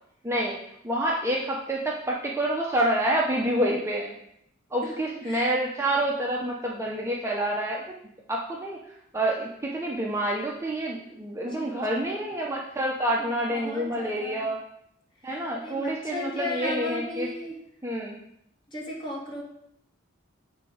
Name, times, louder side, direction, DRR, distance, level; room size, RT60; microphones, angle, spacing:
voice 1, 0.2-0.6 0.8-4.2 4.7-7.8 8.3-8.8 9.1-14.6 15.2-17.3 17.8-18.2, right 1 dB, 15° right, -2 dB, 0.6 m, -28 dB
voice 2, 5.2-5.5 11.4-12.3 13.2-14.5 15.2-17.6 18.7-19.4, left 1 dB, 25° left, -4 dB, 1.8 m, -36 dB
8.0 x 3.4 x 5.0 m, 0.75 s
head